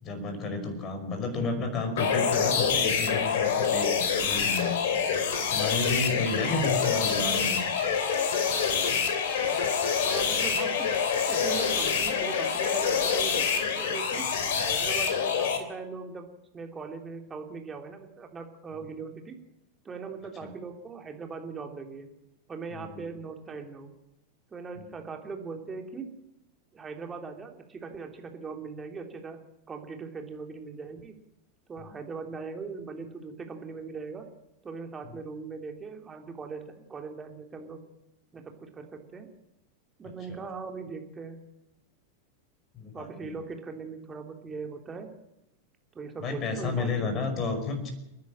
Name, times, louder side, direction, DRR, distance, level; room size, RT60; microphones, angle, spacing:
voice 1, 0.0-4.8 5.5-7.9 14.6-14.7 20.4-20.5 22.7-23.0 24.8-24.9 31.9-32.0 40.3-40.4 42.7-43.3 46.2-47.9, left 3 dB, 30° left, 7 dB, 5.4 m, -32 dB
sound 1, 2.0-15.6, left 6 dB, 55° left, 3.1 m, -26 dB
voice 2, 10.0-10.9 11.3-14.3 14.5-16.3 16.5-19.3 19.8-22.1 22.5-23.9 24.5-26.1 26.7-29.4 29.7-31.1 31.7-34.3 34.6-36.6 36.9-37.8 38.3-39.3 40.0-41.4 42.9-45.1 45.9-46.9, right 5 dB, 20° right, 4 dB, 3.3 m, -40 dB
29.5 x 10.5 x 8.8 m, 0.88 s
figure-of-eight pair, 90°, 0 cm